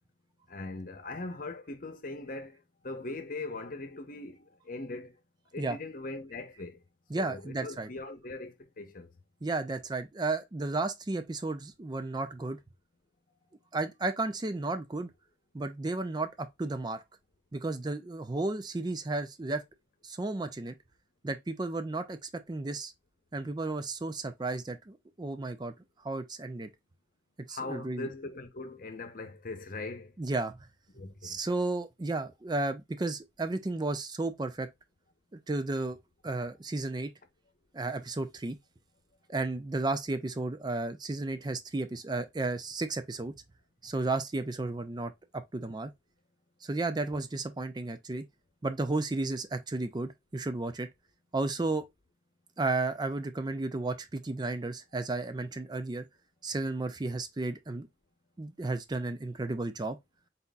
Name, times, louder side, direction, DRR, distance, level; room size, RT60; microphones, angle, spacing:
voice 1, 0.5-5.2 5.5-6.8 7.2-9.1 27.5-30.1 30.9-31.4, left 2 dB, 50° left, 0.9 m, -40 dB
voice 2, 7.1-7.9 9.4-12.6 13.7-15.1 15.5-17.0 17.5-19.6 20.0-20.7 21.2-22.9 23.3-25.7 26.0-26.7 27.5-28.1 30.2-30.5 31.2-34.7 35.5-36.0 36.2-37.1 37.7-38.6 39.3-43.3 43.8-45.9 46.6-48.2 48.6-50.9 51.3-51.9 52.6-56.0 56.4-57.9 58.4-60.0, right 2 dB, 25° right, 0.5 m, -33 dB
4.1 x 4.0 x 2.3 m
head